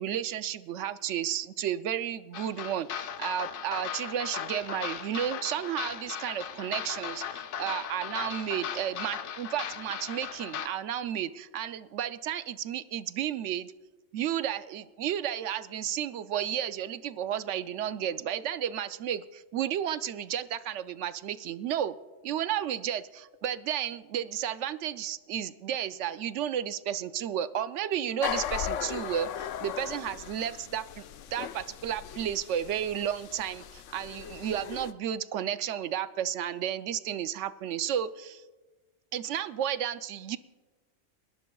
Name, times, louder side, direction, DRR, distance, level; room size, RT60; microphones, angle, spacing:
voice 1, 0.0-13.7 14.1-22.0 22.2-31.0 31.3-38.4 39.1-40.4, right 10 dB, 75° right, 13 dB, 0.9 m, -32 dB
sound 1, 2.3-10.7, left 8 dB, 60° left, 0.6 m, -37 dB
sound 2, 28.2-34.9, left 9 dB, 80° left, 0.9 m, -38 dB
29.5 x 12.0 x 2.3 m, 1.2 s
omnidirectional pair, 1.2 m